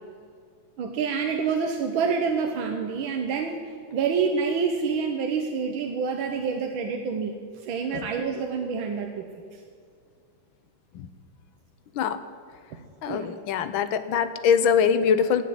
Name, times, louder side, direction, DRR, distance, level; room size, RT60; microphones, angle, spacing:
voice 1, 0.8-3.6 3.9-9.6 12.7-12.8 13.1-13.3, right 5 dB, 80° right, 3 dB, 1.8 m, -27 dB
voice 2, 13.0-15.4, left 7 dB, 80° left, 12 dB, 1.6 m, -23 dB
16.0 x 7.1 x 9.5 m, 2.3 s
omnidirectional pair, 2.2 m